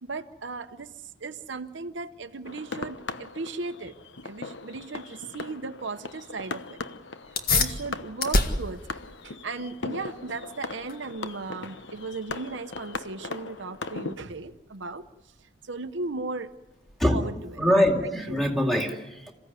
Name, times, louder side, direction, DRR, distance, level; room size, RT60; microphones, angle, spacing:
voice 1, 0.0-4.0 4.2-6.8 7.5-16.5 17.1-17.6 18.0-18.5, right 3 dB, 70° right, 0.8 m, -37 dB
sound 1, 2.4-14.1, left 3 dB, 65° left, 1.0 m, -39 dB
sound 2, 7.2-17.3, left 3 dB, 50° left, 1.9 m, -32 dB
voice 2, 17.6-19.3, equal, ahead, 2.4 m, -23 dB
27.5 x 16.0 x 9.7 m
head